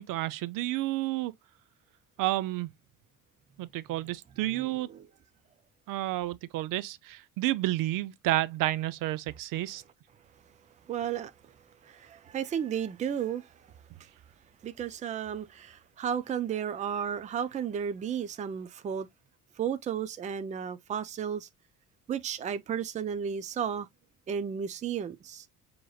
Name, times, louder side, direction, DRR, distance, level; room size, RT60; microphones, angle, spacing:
voice 1, 0.0-1.3 2.2-2.7 3.6-4.9 5.9-9.8, right 16 dB, 80° right, 0.5 m, -30 dB
voice 2, 4.5-5.1 10.9-11.5 11.8-13.7 14.6-19.1 19.6-21.5 22.1-23.9 24.3-25.5, right 8 dB, 25° right, 0.4 m, -33 dB
6.2 x 3.0 x 2.3 m
cardioid pair, 165°, 32 cm